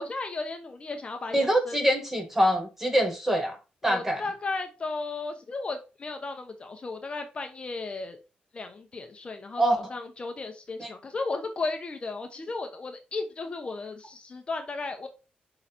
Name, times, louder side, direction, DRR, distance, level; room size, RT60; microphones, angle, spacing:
voice 1, 0.0-1.8 3.8-8.2 8.5-15.1, left 3 dB, 35° left, 0.9 m, -35 dB
voice 2, 1.3-3.6 3.8-4.2 9.6-9.8 10.8-10.9, equal, 10° right, 1.5 m, -24 dB
5.7 x 3.9 x 4.3 m
cardioid pair, 95°, 3 cm